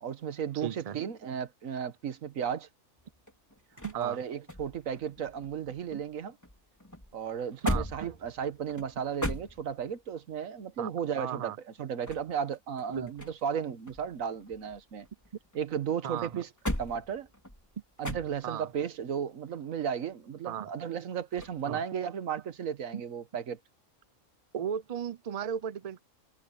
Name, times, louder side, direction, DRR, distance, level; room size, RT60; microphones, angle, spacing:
voice 1, 0.0-2.7 3.9-6.3 7.1-11.5 11.8-15.1 15.5-16.5 16.8-17.3 18.0-23.6, right 8 dB, 85° right, 1.5 m, -34 dB
voice 2, 0.5-1.0 3.8-4.2 5.9-6.0 7.6-7.9 10.8-10.9 11.2-11.6 12.9-13.1 16.0-16.4 18.4-18.7 20.4-20.7 21.7-21.8 22.9-23.0 24.5-26.0, right 8 dB, 45° right, 0.5 m, -35 dB
sound 1, 3.0-6.1 6.4-10.1 11.8-13.6 13.9-15.6 16.1-18.7 21.3-21.7, equal, 10° left, 3.9 m, -38 dB
omnidirectional pair, 1.4 m